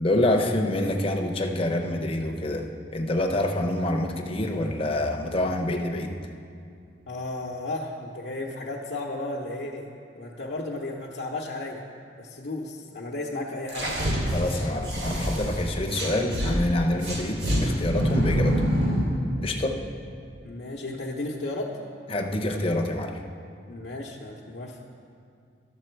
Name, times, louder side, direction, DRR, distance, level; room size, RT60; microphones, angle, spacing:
voice 1, 0.0-6.3 14.3-18.6 19.4-19.8 22.1-23.2, left 1 dB, 30° left, 3 dB, 0.7 m, -27 dB
voice 2, 7.1-9.9 10.1-11.8 12.2-13.9 20.4-21.8 23.7-24.8, left 2 dB, 70° left, -4 dB, 0.8 m, -34 dB
sound 1, 13.7-16.5 17.0-19.1, equal, 70° right, 2.3 m, -26 dB
12.5 x 6.9 x 4.5 m, 2.4 s
head